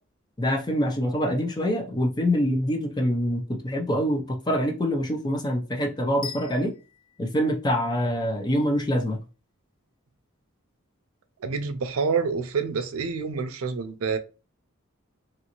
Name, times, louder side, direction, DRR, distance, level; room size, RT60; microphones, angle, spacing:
voice 1, 0.4-6.7 7.2-9.2, equal, 20° left, 0.5 m, -25 dB
sound 1, 6.2-8.3, left 7 dB, 80° left, 0.6 m, -41 dB
voice 2, 11.4-14.2, right 5 dB, 90° right, 0.5 m, -27 dB
3.0 x 2.6 x 2.9 m
head